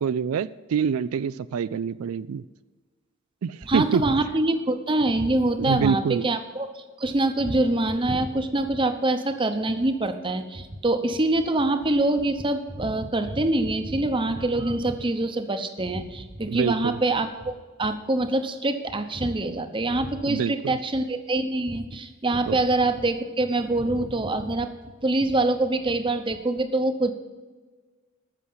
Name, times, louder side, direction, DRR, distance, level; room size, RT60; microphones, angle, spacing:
voice 1, 0.0-2.4 3.4-4.0 5.6-6.3 16.5-17.0 20.3-20.8 22.5-22.6, right 6 dB, 85° right, 15 dB, 0.4 m, -26 dB
voice 2, 3.7-24.7 25.0-27.1, right 2 dB, 25° right, 8 dB, 0.8 m, -25 dB
14.5 x 6.4 x 5.5 m, 1.4 s
head